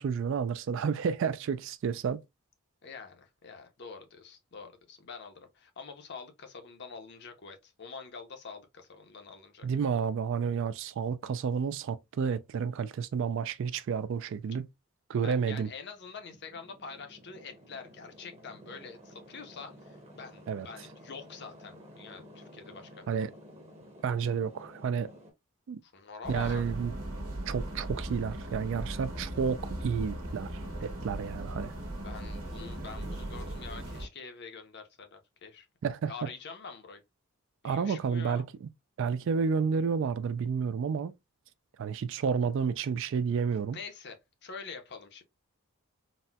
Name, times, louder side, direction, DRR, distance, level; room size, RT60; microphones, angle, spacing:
voice 1, 0.0-2.2 9.6-14.7 15.1-15.7 20.5-20.7 23.1-23.3 24.0-25.1 25.7-25.8 26.3-26.9 27.5-30.5 30.8-31.7 35.8-36.3 37.6-38.7 39.0-41.1 41.8-43.8, right 6 dB, 60° right, 0.3 m, -30 dB
voice 2, 2.8-9.7 15.2-23.1 25.8-26.6 32.0-35.7 36.1-37.0 37.6-38.4 43.7-45.2, left 5 dB, 50° left, 0.6 m, -45 dB
sound 1, 15.9-25.3, equal, 30° right, 0.8 m, -52 dB
sound 2, 26.2-34.1, right 1 dB, 85° right, 1.2 m, -38 dB
4.0 x 2.1 x 2.2 m
head